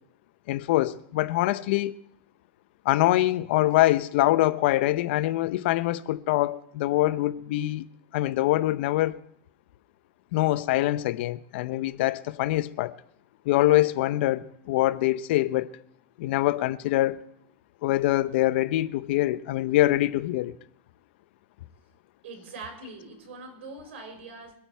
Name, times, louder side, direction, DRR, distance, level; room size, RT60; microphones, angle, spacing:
voice 1, 0.5-1.9 2.8-7.9 8.1-9.2 10.3-13.0 13.5-15.7 16.2-17.2 17.8-20.5, left 16 dB, 65° left, 0.7 m, -24 dB
voice 2, 22.2-24.6, right 3 dB, 85° right, 5.0 m, -42 dB
23.0 x 8.8 x 4.6 m
supercardioid pair, 145°, 6 cm